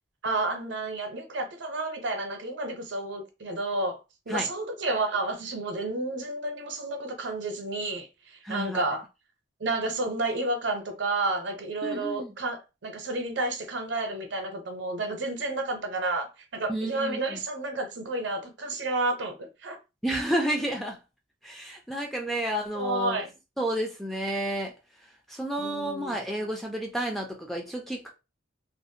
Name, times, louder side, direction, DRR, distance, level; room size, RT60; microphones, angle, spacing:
voice 1, 0.2-4.0 4.3-9.0 9.6-19.8 22.7-23.4 25.6-26.2, right 2 dB, 65° right, 0.7 m, -31 dB
voice 2, 8.4-8.9 11.8-12.3 16.7-17.4 20.0-21.0 21.4-23.2 23.6-24.7 25.3-28.1, right 1 dB, ahead, 0.3 m, -31 dB
2.4 x 2.0 x 2.7 m
head